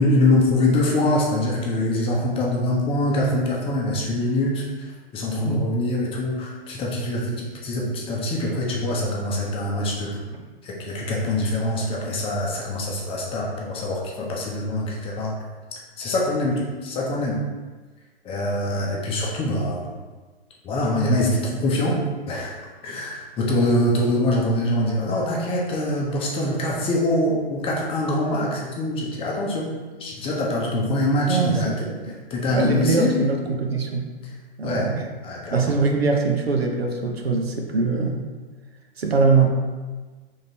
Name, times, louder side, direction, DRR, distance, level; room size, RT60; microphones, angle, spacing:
voice 1, 0.0-10.2 10.6-15.4 16.0-17.4 18.2-19.9 20.6-22.0 22.3-22.5 22.8-29.7 30.0-33.2 34.2-34.3 34.6-34.9 35.2-35.7, left 1 dB, 20° left, -2 dB, 0.7 m, -24 dB
voice 2, 31.3-32.2 32.5-34.1 34.6-35.1 35.5-38.2 39.0-39.5, right 4 dB, 80° right, 2 dB, 0.8 m, -22 dB
5.0 x 3.6 x 2.8 m, 1.3 s
figure-of-eight pair, 110°, 30 cm